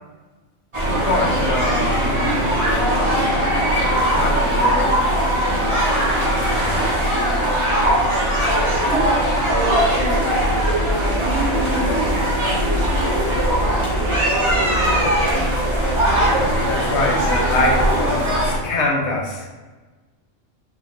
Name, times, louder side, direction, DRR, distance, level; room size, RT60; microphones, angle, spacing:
sound 1, 0.7-18.6, right 1 dB, 30° right, 0.8 m, -19 dB
voice 1, 1.0-2.3 2.7-3.2 4.1-5.2 6.1-7.5 16.1-19.5, left 2 dB, 65° left, -1 dB, 0.9 m, -25 dB
voice 2, 8.9-13.3, right 2 dB, 70° right, -2 dB, 1.1 m, -28 dB
3.1 x 2.5 x 3.5 m, 1.3 s
omnidirectional pair, 1.3 m